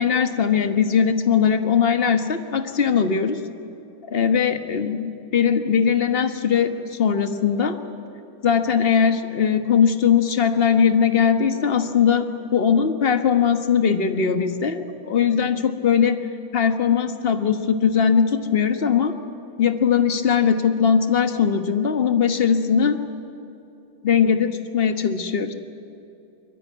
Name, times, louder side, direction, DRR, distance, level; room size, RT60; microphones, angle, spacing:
voice 1, 0.0-3.4 4.1-7.8 8.4-16.3 16.5-19.2 19.6-23.0 24.0-25.5, left 7 dB, 35° left, 8 dB, 1.2 m, -20 dB
23.5 x 22.5 x 9.5 m, 2.8 s
omnidirectional pair, 2.2 m